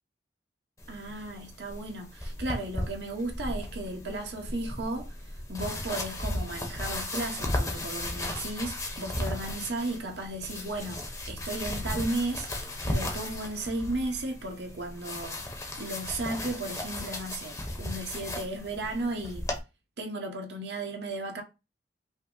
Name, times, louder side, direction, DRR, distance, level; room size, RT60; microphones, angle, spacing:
sound 1, 0.8-19.6, left 1 dB, 20° left, 1.0 m, -36 dB
voice 1, 0.9-15.4 15.8-19.4 20.0-21.4, right 2 dB, 70° right, 1.0 m, -35 dB
5.4 x 2.1 x 3.8 m
head